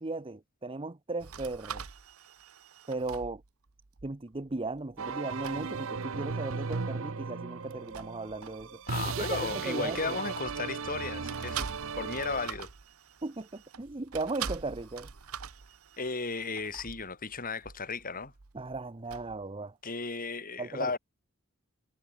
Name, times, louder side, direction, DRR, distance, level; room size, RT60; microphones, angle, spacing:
voice 1, 0.0-1.8 2.9-3.4 4.0-8.8 9.4-10.2 13.2-15.1 18.5-19.7 20.6-20.9, right 3 dB, 25° right, 0.8 m, -37 dB
sound 1, 1.2-5.2 5.4-5.7 7.6-10.9 11.3-19.5, right 7 dB, 90° right, 1.1 m, -45 dB
sound 2, 5.0-12.5, right 5 dB, 65° right, 0.8 m, -36 dB
voice 2, 8.9-11.7 12.0-12.7 16.0-18.3 19.8-21.0, left 4 dB, 40° left, 3.4 m, -35 dB
head